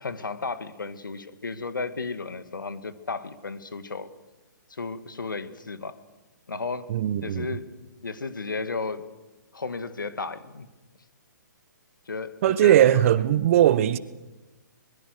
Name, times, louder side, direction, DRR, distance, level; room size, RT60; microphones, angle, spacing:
voice 1, 0.0-4.1 4.7-6.0 6.5-6.9 7.2-7.7 8.0-9.0 9.5-10.7 12.1-13.3, left 4 dB, 85° left, 1.9 m, -34 dB
voice 2, 6.9-7.5 12.4-14.0, right 12 dB, 45° right, 1.1 m, -19 dB
24.5 x 21.5 x 6.6 m
hypercardioid pair, 135°, 10 cm